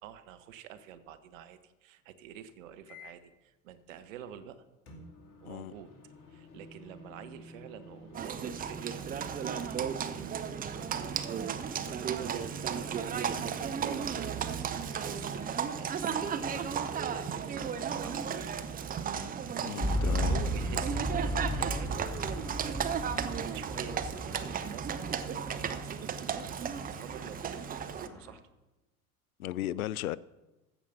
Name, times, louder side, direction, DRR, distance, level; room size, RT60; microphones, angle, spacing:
voice 1, 0.0-4.6 5.4-5.9 6.3-9.8 10.1-18.7 19.8-22.0 23.2-26.1 26.8-28.4, right 9 dB, 60° right, 1.2 m, -48 dB
sound 1, 2.9-3.3 4.9-18.7, left 1 dB, 45° left, 2.7 m, -51 dB
Livestock farm animals working animals, 8.1-28.1, right 7 dB, 20° right, 0.7 m, -34 dB
voice 2, 19.6-20.4 29.4-30.2, left 13 dB, 75° left, 0.5 m, -35 dB
sound 2, 19.8-28.4, equal, 5° left, 1.0 m, -36 dB
15.0 x 5.2 x 6.7 m
figure-of-eight pair, 80°, 44 cm